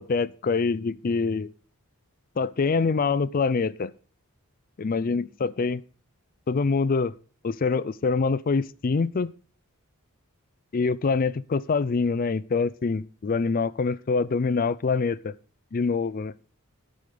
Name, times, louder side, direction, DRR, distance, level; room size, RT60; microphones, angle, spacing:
voice 1, 0.0-1.5 2.4-3.9 4.8-5.8 6.5-7.1 7.4-9.3 10.7-15.3 15.7-16.3, left 4 dB, 40° left, 0.4 m, -25 dB
12.5 x 5.0 x 6.5 m
head